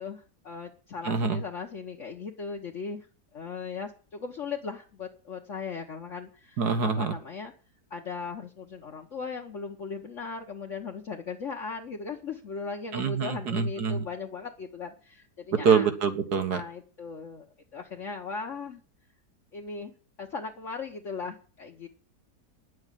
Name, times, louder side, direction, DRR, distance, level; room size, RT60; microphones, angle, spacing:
voice 1, 0.0-3.1 3.3-7.5 7.9-15.9 16.5-17.5 17.7-18.8 19.5-21.9, left 5 dB, 50° left, 1 dB, 1.5 m, -38 dB
voice 2, 1.1-1.4 6.6-7.1 12.9-14.0 15.6-16.6, right 6 dB, 70° right, 8 dB, 2.1 m, -25 dB
10.5 x 7.5 x 9.2 m, 0.38 s
omnidirectional pair, 1.8 m